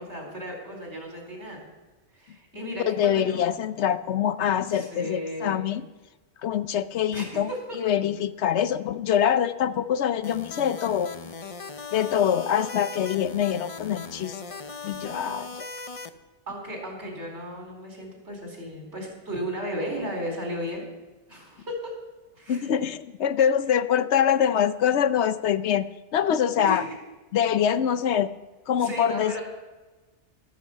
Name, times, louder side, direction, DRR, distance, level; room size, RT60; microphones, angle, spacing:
voice 1, 0.0-1.6 2.1-3.4 4.7-5.6 7.1-7.6 16.5-20.9 21.3-21.9 22.4-22.7 26.6-27.0 28.8-29.4, equal, 70° right, 1 dB, 4.4 m, -35 dB
voice 2, 2.8-5.8 6.4-7.5 7.8-11.1 11.9-14.4 14.8-15.7 22.5-25.9 26.1-26.8 27.3-28.3 28.7-29.4, left 9 dB, 70° left, 13 dB, 0.9 m, -24 dB
sound 1, 10.2-16.1, left 4 dB, 35° left, 0.7 m, -39 dB
14.0 x 13.5 x 5.7 m, 1.2 s
omnidirectional pair, 1.2 m